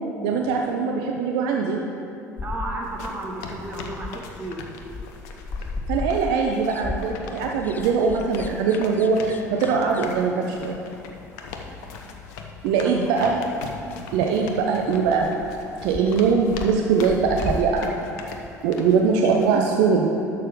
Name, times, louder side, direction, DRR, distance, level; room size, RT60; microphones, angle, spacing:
voice 1, 0.2-1.8 5.9-10.7 12.6-13.5 14.1-15.3 15.8-17.8 18.6-20.1, right 5 dB, 60° right, 1 dB, 0.6 m, -21 dB
sound 1, 2.4-4.5 4.8-10.8 13.1-13.2 13.6-13.7 13.9-14.0 14.2-14.6 14.9-16.2 16.4-17.9, left 3 dB, 20° left, 0.3 m, -35 dB
voice 2, 2.4-4.6, right 2 dB, 20° right, -2 dB, 1.7 m, -33 dB
sound 2, 2.8-19.6, left 4 dB, 60° left, 0.8 m, -40 dB
11.0 x 6.6 x 3.6 m, 2.5 s
figure-of-eight pair, 60°, 9 cm